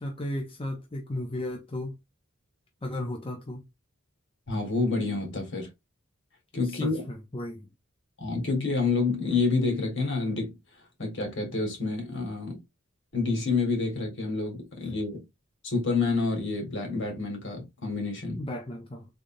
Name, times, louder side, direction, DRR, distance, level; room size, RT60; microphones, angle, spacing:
voice 1, 0.0-1.9 2.8-3.6 6.6-7.7 18.4-19.1, left 1 dB, 25° left, 0.7 m, -35 dB
voice 2, 4.5-5.7 6.5-7.0 8.2-10.6 11.0-12.6 13.1-15.2 15.6-18.4, left 3 dB, 60° left, 1.8 m, -28 dB
3.8 x 3.4 x 2.6 m
head